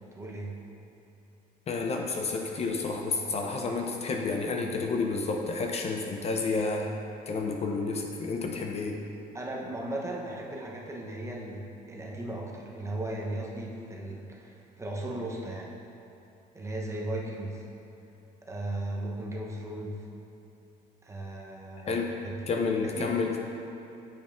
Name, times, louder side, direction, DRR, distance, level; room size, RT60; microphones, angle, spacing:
voice 1, 0.1-0.5 9.3-15.7 16.5-17.6 18.4-20.0 21.0-22.4 22.9-23.1, right 1 dB, 15° right, -2 dB, 0.9 m, -36 dB
voice 2, 1.7-6.9 7.3-9.0 21.9-22.1 22.5-23.4, left 4 dB, 40° left, 2 dB, 0.5 m, -30 dB
8.6 x 5.3 x 2.5 m, 3.0 s
cardioid pair, 110°, 17 cm